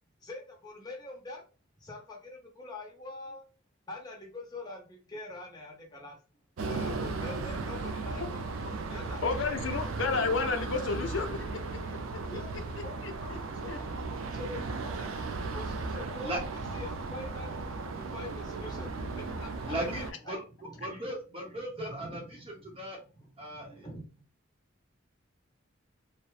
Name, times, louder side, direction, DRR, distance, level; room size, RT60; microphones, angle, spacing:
voice 1, 0.2-1.4 1.8-3.4 3.9-6.2 6.7-8.4 8.9-9.8 12.3-15.1 15.5-16.4 16.7-17.6 17.9-19.8 20.2-20.3 20.6-21.2 21.5-24.2, left 2 dB, 20° left, 0 dB, 0.7 m, -45 dB
sound 1, 6.6-20.1, right 3 dB, 85° right, 0.4 m, -36 dB
voice 2, 9.2-11.5 13.0-13.1 13.7-13.8, left 4 dB, 70° left, 7 dB, 0.4 m, -31 dB
voice 3, 19.7-20.4 20.8-23.0 23.4-23.9, right 1 dB, 30° right, 0 dB, 0.7 m, -37 dB
2.8 x 2.0 x 2.3 m, 0.33 s
head